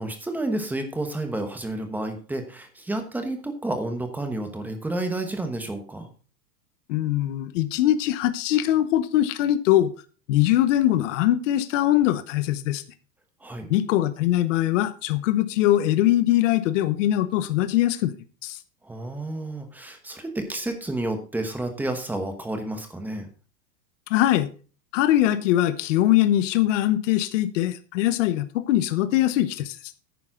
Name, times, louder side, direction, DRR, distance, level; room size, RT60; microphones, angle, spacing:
voice 1, 0.0-6.1 13.4-13.7 18.8-23.3, right 1 dB, 5° right, 1.1 m, -30 dB
voice 2, 6.9-9.9 10.3-12.8 13.7-18.1 18.4-18.6 24.1-24.5 24.9-29.8, left 13 dB, 45° left, 1.0 m, -22 dB
10.5 x 9.6 x 3.7 m
supercardioid pair, 165°, 50 cm